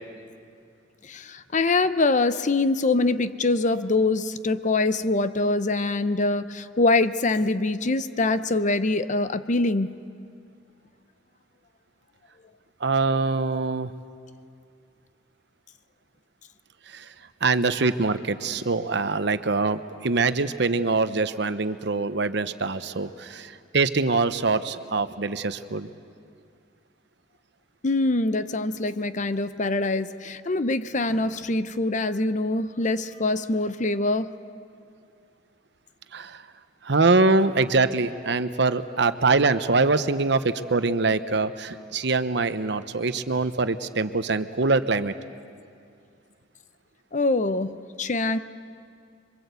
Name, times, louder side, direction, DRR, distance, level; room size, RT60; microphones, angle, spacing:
voice 1, 1.0-9.9 27.8-34.3 47.1-48.4, left 2 dB, 40° left, 12 dB, 0.8 m, -24 dB
voice 2, 12.8-13.9 16.9-17.1 17.4-25.9 36.1-36.4 36.8-45.1, right 3 dB, 65° right, 11 dB, 0.9 m, -24 dB
26.0 x 24.0 x 8.3 m, 2.3 s
head